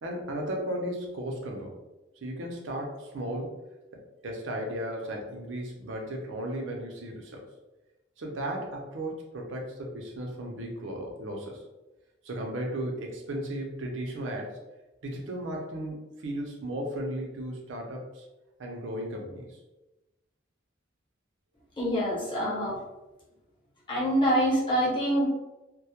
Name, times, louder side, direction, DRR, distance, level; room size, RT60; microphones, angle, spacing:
voice 1, 0.0-1.8 2.2-3.5 3.9-7.5 8.2-11.6 12.2-14.6 15.0-18.2 18.6-19.5, right 1 dB, 80° right, 0 dB, 0.6 m, -35 dB
voice 2, 21.8-22.8 23.9-25.3, equal, 25° left, -5 dB, 0.8 m, -25 dB
2.2 x 2.1 x 2.8 m, 1.0 s
head